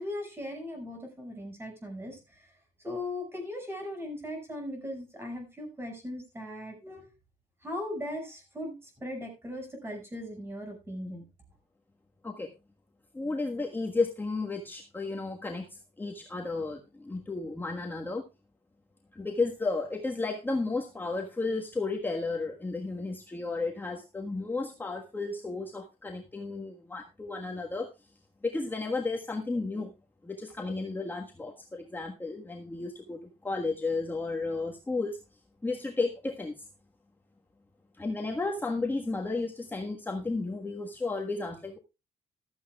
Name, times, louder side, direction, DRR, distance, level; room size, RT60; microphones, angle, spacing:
voice 1, 0.0-2.5 2.8-7.0 7.6-11.2, left 1 dB, 20° right, 4 dB, 5.9 m, -38 dB
voice 2, 13.1-18.2 19.1-27.9 28.4-29.9 30.2-35.2 35.6-36.7 38.0-41.8, left 3 dB, 15° left, 1 dB, 1.4 m, -33 dB
15.0 x 13.0 x 2.3 m, 0.26 s
cardioid pair, 145°, 13 cm